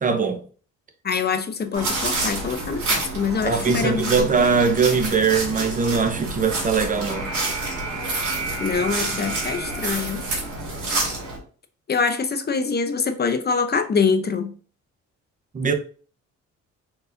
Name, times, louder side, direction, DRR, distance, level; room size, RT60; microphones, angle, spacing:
voice 1, 0.0-0.4 3.4-7.3 15.5-15.7, right 5 dB, 25° right, 0.8 m, -21 dB
voice 2, 1.0-4.4 8.6-10.2 11.9-14.5, left 5 dB, 35° left, 0.7 m, -24 dB
sound 1, 1.7-11.4, right 2 dB, 80° right, 2.4 m, -28 dB
4.6 x 3.9 x 2.6 m
cardioid pair, 90°, 30 cm